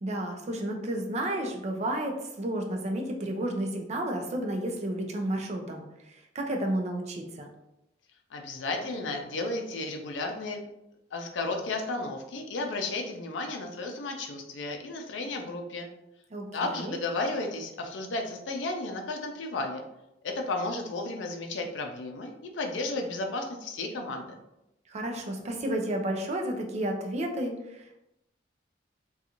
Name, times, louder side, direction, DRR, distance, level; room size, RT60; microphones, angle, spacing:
voice 1, 0.0-7.5 16.3-17.0 24.9-28.0, right 1 dB, 40° right, 2 dB, 0.4 m, -32 dB
voice 2, 8.3-10.6 11.1-15.9 16.5-19.8 20.2-24.4, left 2 dB, 85° left, 3 dB, 0.5 m, -33 dB
2.5 x 2.3 x 2.8 m, 0.89 s
head